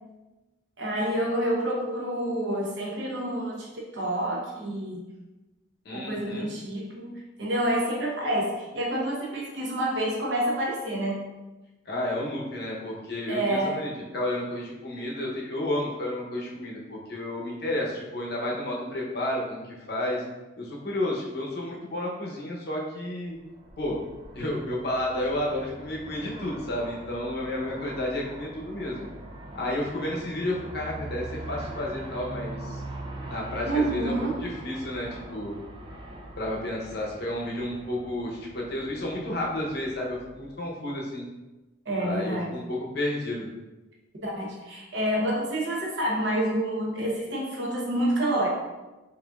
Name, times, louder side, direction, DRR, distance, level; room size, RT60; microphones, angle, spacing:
voice 1, 0.8-5.0 5.9-11.3 13.3-14.1 33.6-34.5 41.8-42.5 44.2-48.5, right 1 dB, 60° right, -3 dB, 1.0 m, -28 dB
voice 2, 5.8-6.5 11.9-20.2 20.6-23.4 23.8-24.0 24.3-29.1 29.5-32.8 33.3-34.1 34.4-35.5 36.3-41.2 42.0-43.5, left 1 dB, 55° left, -2 dB, 0.8 m, -31 dB
Aircraft, 23.4-40.7, right 1 dB, 25° right, 0.3 m, -42 dB
4.9 x 2.7 x 2.4 m, 1.1 s
head